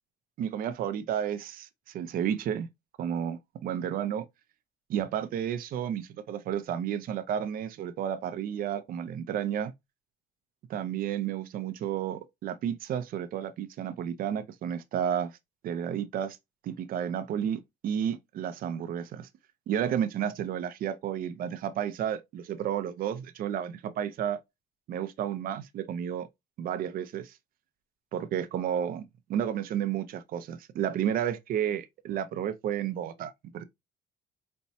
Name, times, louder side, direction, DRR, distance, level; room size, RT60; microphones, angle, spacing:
voice 1, 0.4-2.7 3.0-4.2 4.9-9.7 10.7-15.3 15.6-16.4 16.6-19.3 19.7-24.4 24.9-26.3 26.6-27.3 28.1-29.0 29.3-33.6, right 9 dB, 60° right, 0.5 m, -32 dB
4.2 x 2.2 x 2.6 m
cardioid pair, 110°, 17 cm